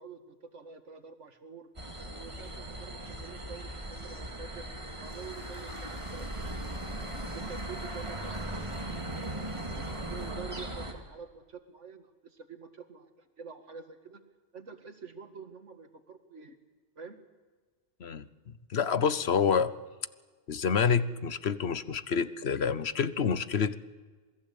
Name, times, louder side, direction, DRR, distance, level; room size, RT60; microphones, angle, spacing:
voice 1, 0.0-1.7 2.1-4.7 5.0-14.2 14.5-16.6 17.0-17.2, right 5 dB, 80° right, 7 dB, 2.2 m, -48 dB
sound 1, 1.8-10.9, right 1 dB, 25° right, 2.7 m, -38 dB
sound 2, 5.1-10.3, equal, 30° left, 6.6 m, -55 dB
voice 2, 18.7-19.7 20.5-23.8, left 6 dB, 65° left, 14 dB, 1.2 m, -27 dB
27.5 x 20.5 x 8.5 m, 1.4 s
omnidirectional pair, 1.2 m